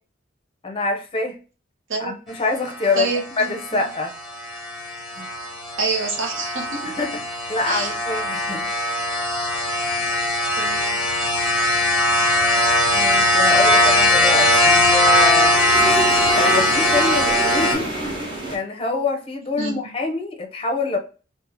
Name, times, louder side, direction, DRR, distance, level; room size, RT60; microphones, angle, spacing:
voice 1, 0.6-1.4 2.0-3.1 3.4-4.1 5.2-5.3 6.8-7.2 7.5-8.6 12.9-15.6 16.3-17.9 18.5-21.0, left 3 dB, 25° left, 3 dB, 0.6 m, -25 dB
voice 2, 2.9-3.8 5.8-7.0 7.6-7.9 8.5-8.7 10.0-10.1 10.6-11.0 19.6-19.8, right 4 dB, 75° right, 2 dB, 0.9 m, -27 dB
sound 1, 3.0-17.7, left 1 dB, ahead, 1.0 m, -20 dB
sound 2, 11.6-18.6, right 2 dB, 25° right, 1.0 m, -30 dB
2.7 x 2.4 x 3.8 m, 0.36 s
head